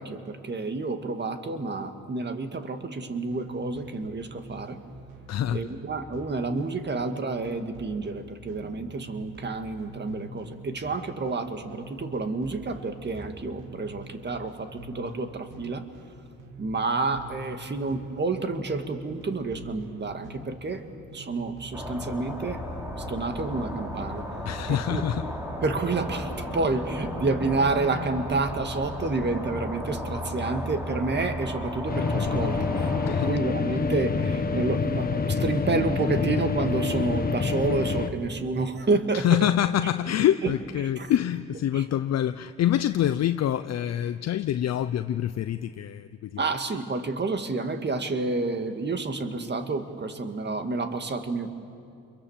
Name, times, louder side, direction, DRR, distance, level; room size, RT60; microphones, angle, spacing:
voice 1, 0.0-4.8 5.5-15.9 16.6-20.8 21.1-22.6 23.0-24.3 24.7-25.0 25.6-39.5 40.4-40.5 40.8-41.1 41.7-41.9 46.4-51.5, right 3 dB, 35° right, 7 dB, 2.1 m, -29 dB
sound 1, 3.3-22.1, right 2 dB, 85° right, 3.0 m, -46 dB
voice 2, 5.3-5.7 24.4-25.3 33.1-33.4 39.1-46.5, left 11 dB, 60° left, 11 dB, 0.7 m, -26 dB
sound 2, 21.7-33.3, left 1 dB, 10° right, 3.4 m, -34 dB
sound 3, 31.9-38.1, left 5 dB, 30° left, 1.5 m, -27 dB
29.0 x 23.0 x 7.4 m, 2.7 s
cardioid pair, 90°, 30 cm